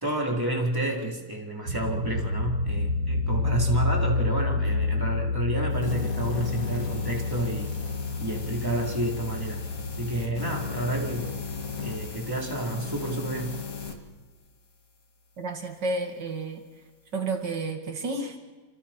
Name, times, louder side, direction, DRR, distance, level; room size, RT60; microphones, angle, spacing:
voice 1, 0.0-7.7 8.2-9.6 10.0-11.4 11.8-13.6, right 1 dB, 10° right, -2 dB, 3.9 m, -30 dB
sound 1, 1.7-12.1, left 3 dB, 65° right, 2.4 m, -29 dB
sound 2, 5.7-14.0, left 6 dB, 55° left, 2.3 m, -36 dB
voice 2, 15.4-16.7 17.1-18.4, right 3 dB, 85° right, 4 dB, 2.8 m, -31 dB
28.5 x 26.5 x 4.5 m, 1.3 s
omnidirectional pair, 1.9 m